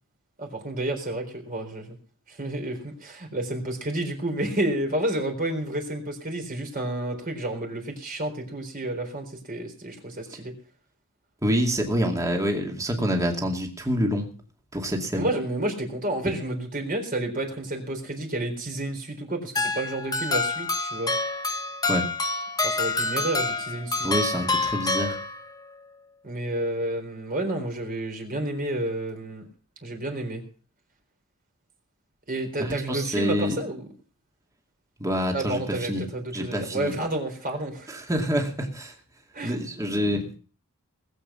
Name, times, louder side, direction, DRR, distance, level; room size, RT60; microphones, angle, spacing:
voice 1, 0.4-2.0 2.3-10.6 15.1-21.1 22.6-24.1 26.2-29.5 29.8-30.4 32.3-33.9 35.3-37.9 39.3-39.6, right 1 dB, 40° right, 3 dB, 4.0 m, -30 dB
voice 2, 11.4-14.3 14.7-15.3 21.9-22.1 24.0-25.2 32.6-33.6 35.0-35.6 35.9-36.0 36.3-36.9 37.9-38.9 39.4-40.4, equal, 15° right, 2 dB, 2.4 m, -26 dB
sound 1, 19.6-25.7, left 3 dB, 15° left, 1.0 m, -27 dB
20.0 x 8.2 x 5.6 m, 0.41 s
head